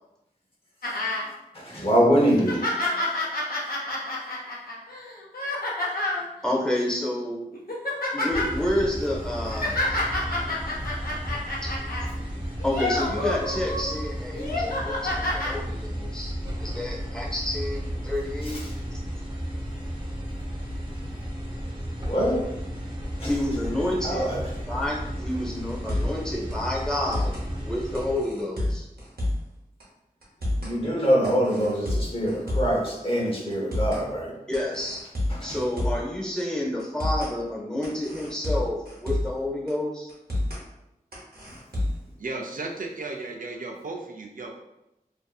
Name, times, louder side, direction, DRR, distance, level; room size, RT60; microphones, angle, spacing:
sound 1, 0.8-1.3 1.7-1.8 2.3-6.2 7.0-7.2 7.5-8.5 9.3-12.1 12.6-13.9 14.3-15.5 16.4-16.5, left 1 dB, 70° left, 0.6 m, -29 dB
voice 1, 1.5-2.7 18.5-18.7 22.1-22.5 23.2-23.3 24.0-24.5 30.6-34.4 35.3-35.6, equal, 35° left, -2 dB, 0.8 m, -24 dB
voice 2, 6.4-7.5 8.1-10.3 11.6-11.7 12.6-16.3 16.6-18.6 23.2-24.3 24.7-27.3 27.6-28.9 34.5-35.0 35.4-40.1, left 1 dB, 5° left, -4 dB, 0.7 m, -29 dB
sound 2, 8.3-28.2, equal, 30° right, 0.8 m, -34 dB
sound 3, 25.7-26.2 26.5-26.6 26.9-27.5 27.9-29.5 29.8-29.9 30.2-30.8 31.2-32.8 33.1-33.2 33.5-34.0 34.5-36.1 36.4-36.5 36.8-37.3 37.8-39.4 39.7-39.8 40.1-40.6 41.1-42.1, left 1 dB, 75° right, 0.8 m, -29 dB
voice 3, 42.2-44.6, right 3 dB, 60° right, 1 dB, 0.4 m, -35 dB
2.5 x 2.5 x 2.3 m, 0.90 s
wide cardioid pair, 55°, 16 cm